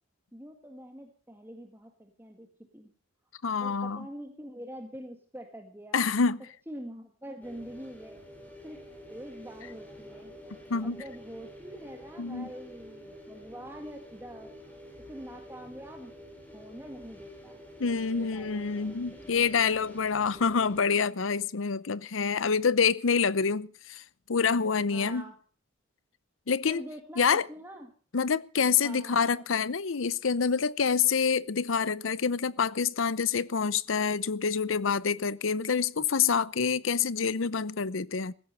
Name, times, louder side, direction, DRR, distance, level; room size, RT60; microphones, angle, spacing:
voice 1, 0.3-2.5 2.7-2.9 3.6-6.1 6.7-8.2 8.6-8.8 9.1-10.3 10.8-14.5 15.1-16.1 16.5-17.6 17.9-19.5 24.9-25.4 26.7-27.9 28.8-29.5, equal, 10° right, 1.7 m, -45 dB
voice 2, 3.4-4.1 5.9-6.4 10.7-11.0 12.2-12.5 17.8-24.0 24.3-25.2 26.5-26.8 27.2-27.5 28.1-38.3, left 6 dB, 85° left, 0.7 m, -27 dB
sound 1, 7.4-20.8, equal, 10° left, 4.2 m, -48 dB
16.0 x 15.0 x 5.4 m
head